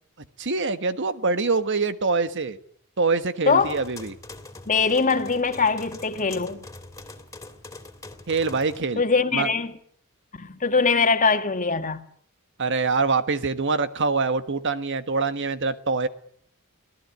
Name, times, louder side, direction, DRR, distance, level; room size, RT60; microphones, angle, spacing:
voice 1, 0.4-2.6 3.0-4.2 8.3-9.0 9.3-9.5 12.6-16.1, right 4 dB, 60° right, 1.4 m, -24 dB
voice 2, 3.5-3.8 4.7-6.6 9.0-9.8 10.3-12.0, left 4 dB, 35° left, 1.9 m, -22 dB
sound 1, 3.6-8.8, left 2 dB, 15° left, 3.0 m, -43 dB
25.0 x 17.5 x 9.6 m
head